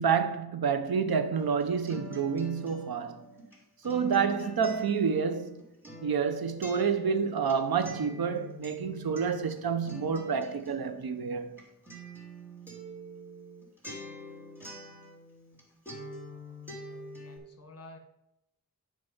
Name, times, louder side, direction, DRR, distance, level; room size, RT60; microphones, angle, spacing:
voice 1, 0.0-3.2 3.8-5.6 6.0-11.6, right 6 dB, 75° right, 0.9 m, -29 dB
Acoustic guitar, 1.4-15.6 15.9-17.4, equal, 5° right, 3.1 m, -46 dB
voice 2, 16.8-18.0, left 2 dB, 40° left, 1.5 m, -52 dB
8.9 x 5.1 x 5.5 m
wide cardioid pair, 75°, 37 cm